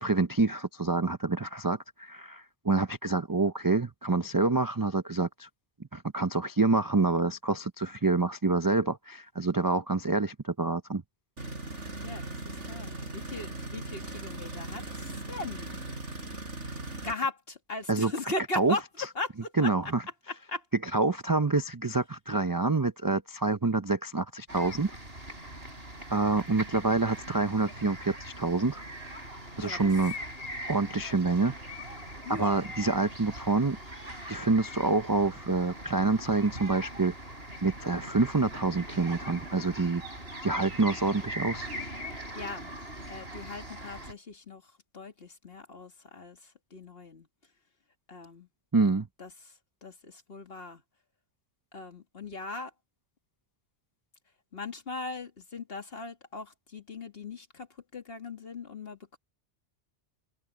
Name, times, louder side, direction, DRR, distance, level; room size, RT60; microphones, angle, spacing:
voice 1, 0.0-5.5 5.9-11.0 17.9-18.1 18.6-18.7 19.6-20.0 20.9-24.9 26.1-28.8 29.6-30.1 30.7-31.5 32.4-33.8 34.3-37.1 37.6-40.0 40.4-41.7 48.7-49.1, right 3 dB, 30° right, 0.4 m, -27 dB
sound 1, 11.4-17.1, right 2 dB, 90° right, 5.0 m, -39 dB
voice 2, 12.0-15.8 17.0-19.7 20.3-20.7 29.6-29.9 32.2-32.7 42.3-42.7 43.1-47.3 48.1-48.5 49.2-50.8 51.7-52.7 54.5-59.2, left 3 dB, 55° left, 2.4 m, -39 dB
sound 2, 24.5-44.1, equal, 55° right, 6.7 m, -41 dB
omnidirectional pair, 1.2 m